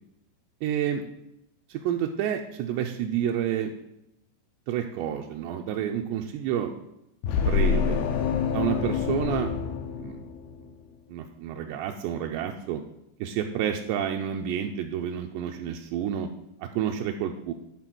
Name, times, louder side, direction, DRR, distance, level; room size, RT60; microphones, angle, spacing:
voice 1, 0.6-1.1 1.7-3.7 4.7-6.8 7.4-8.0 8.5-9.5 9.9-10.2 11.1-12.8 13.2-16.3 16.6-17.5, right 9 dB, 85° right, 3 dB, 2.6 m, -29 dB
sound 1, 7.2-10.7, left 6 dB, 80° left, 2.3 m, -26 dB
10.5 x 4.1 x 6.0 m, 0.82 s
omnidirectional pair, 5.0 m